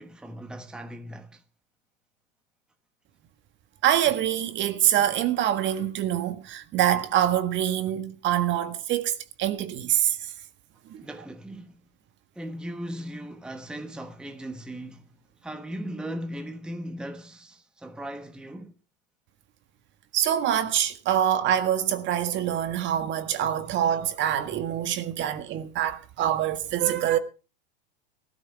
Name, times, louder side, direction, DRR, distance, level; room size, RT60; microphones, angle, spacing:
voice 1, 0.0-1.4 11.0-11.8 12.3-18.7, right 1 dB, 5° right, 1.1 m, -38 dB
voice 2, 3.8-10.3 10.9-11.0 20.1-27.2, right 11 dB, 40° right, 1.7 m, -25 dB
18.5 x 13.0 x 3.4 m
hypercardioid pair, 110°, 29 cm